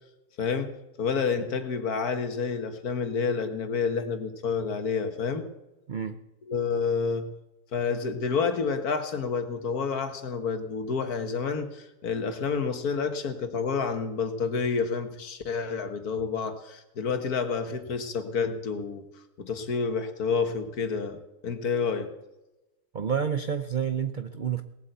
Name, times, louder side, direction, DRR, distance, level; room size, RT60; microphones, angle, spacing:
voice 1, 0.4-5.5 6.5-7.3 7.7-19.1 19.4-22.1, left 5 dB, 65° left, 8 dB, 1.8 m, -29 dB
voice 2, 22.9-24.6, right 7 dB, 70° right, 10 dB, 0.4 m, -29 dB
18.5 x 8.3 x 7.9 m, 0.97 s
omnidirectional pair, 1.7 m